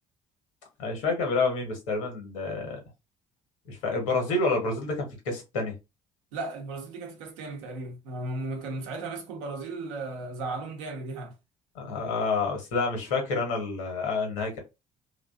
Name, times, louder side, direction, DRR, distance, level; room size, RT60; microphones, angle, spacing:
voice 1, 0.8-2.8 3.7-5.7 11.7-14.6, left 3 dB, 75° left, 0.9 m, -28 dB
voice 2, 6.3-11.3, right 2 dB, 70° right, 0.7 m, -35 dB
2.5 x 2.2 x 2.3 m
figure-of-eight pair, 50°, 16 cm